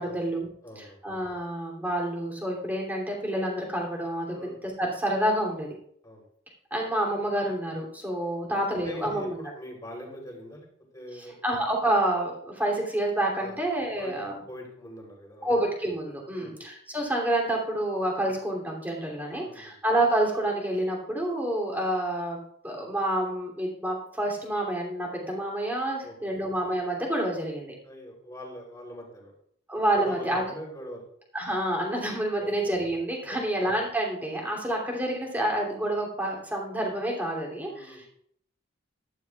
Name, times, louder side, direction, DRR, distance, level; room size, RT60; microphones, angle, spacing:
voice 1, 0.0-0.5 0.8-4.3 4.8-5.7 6.7-9.4 11.1-14.4 15.4-27.7 29.7-30.4 31.3-38.1, right 1 dB, 10° right, -2 dB, 2.9 m, -28 dB
voice 2, 0.6-1.0 4.3-4.6 6.0-6.2 8.5-10.7 10.9-11.4 13.4-13.6 14.0-15.5 16.3-16.6 19.3-19.8 26.0-26.4 27.8-29.3 29.9-31.0 32.4-32.5 33.3-33.4 37.6-38.0, equal, 20° left, -1 dB, 3.4 m, -43 dB
14.0 x 13.0 x 2.4 m, 0.68 s
head